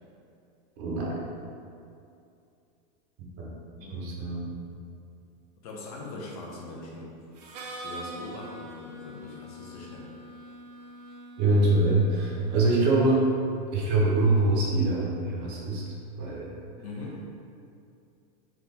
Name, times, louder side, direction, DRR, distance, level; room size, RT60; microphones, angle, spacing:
voice 1, 0.8-1.2 3.2-3.5 3.9-4.5 11.4-13.3 13.7-15.8 16.2-16.5, right 2 dB, 35° right, -3 dB, 0.7 m, -24 dB
voice 2, 3.8-4.1 5.6-7.1 7.8-10.1 16.8-17.2, left 2 dB, 65° left, -3 dB, 0.9 m, -41 dB
Harmonica, 7.3-13.1, right 1 dB, 85° right, 0.7 m, -44 dB
3.9 x 2.9 x 3.5 m, 2.5 s
supercardioid pair, 180°, 21 cm